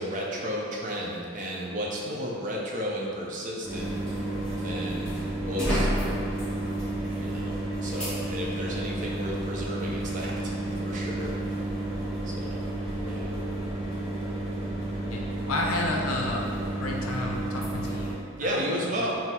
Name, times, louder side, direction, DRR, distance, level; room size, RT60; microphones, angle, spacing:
voice 1, 0.0-3.9 4.6-5.1 5.5-5.9 7.2-11.3 12.2-12.6 13.1-13.3 18.4-19.2, equal, 35° right, -3 dB, 0.5 m, -33 dB
sound 1, 3.6-18.1, right 1 dB, 5° left, 1.1 m, -31 dB
Telephone, 12.3-12.5 13.0-13.5 14.0-14.5 15.0-15.5 16.0-16.5 17.0-17.3 18.3-18.5, left 7 dB, 25° left, 1.0 m, -48 dB
voice 2, 15.1-16.4 16.7-18.6, left 2 dB, 70° left, 0 dB, 0.5 m, -31 dB
4.3 x 2.0 x 4.2 m, 2.6 s
head